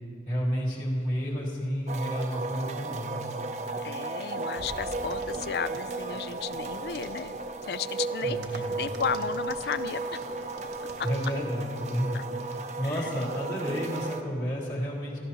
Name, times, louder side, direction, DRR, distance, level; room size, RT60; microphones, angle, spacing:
voice 1, 0.2-3.4 8.2-8.8 11.0-15.2, equal, 45° left, -6 dB, 2.4 m, -31 dB
sound 1, 1.9-14.2, right 3 dB, 40° right, 0.5 m, -34 dB
voice 2, 3.8-7.4 7.6-10.2 11.0-11.1 12.1-12.3 12.8-13.1, left 7 dB, 60° left, 15 dB, 0.3 m, -34 dB
sound 2, 4.5-6.2, equal, 80° left, 2.4 m, -46 dB
sound 3, 4.9-11.4, right 2 dB, 75° right, 1.0 m, -49 dB
17.0 x 12.5 x 2.9 m, 2.5 s
head